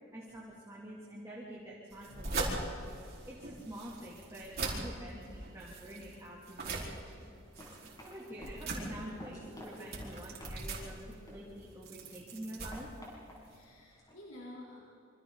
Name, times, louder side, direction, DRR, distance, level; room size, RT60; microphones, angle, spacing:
voice 1, 0.1-2.7 3.3-7.1 8.0-12.9, right 1 dB, 15° right, -5 dB, 3.1 m, -47 dB
sound 1, 1.9-13.6, right 2 dB, 50° right, 4.6 m, -41 dB
Run, 7.4-11.9 12.2-14.1, left 1 dB, 20° left, 7.2 m, -52 dB
voice 2, 13.5-14.8, left 1 dB, 90° left, -5 dB, 3.9 m, -51 dB
27.0 x 25.5 x 4.1 m, 2.6 s
head